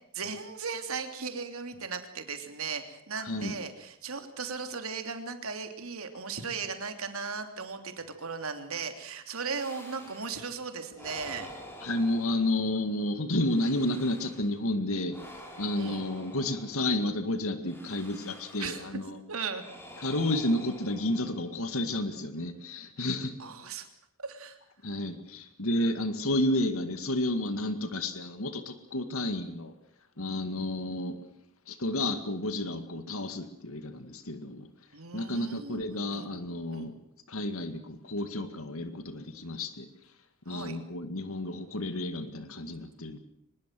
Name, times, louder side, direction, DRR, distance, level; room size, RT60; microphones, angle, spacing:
voice 1, 0.1-11.5 15.8-16.0 18.6-18.9 19.3-19.6 23.4-23.9 24.2-24.6 34.9-36.3 36.7-36.9 40.5-40.8, right 5 dB, 85° right, 6 dB, 3.2 m, -37 dB
voice 2, 3.1-3.5 11.8-15.2 15.6-19.2 20.0-23.3 24.8-29.7 30.2-31.2 31.7-34.7 35.1-36.9 37.3-39.9 40.5-43.2, left 1 dB, 80° left, 9 dB, 2.1 m, -31 dB
sound 1, 9.5-10.6 10.9-12.9 13.4-14.6 15.1-17.1 17.6-19.0 19.5-21.6, equal, 10° left, 4.7 m, -48 dB
23.5 x 21.0 x 7.7 m, 0.73 s
head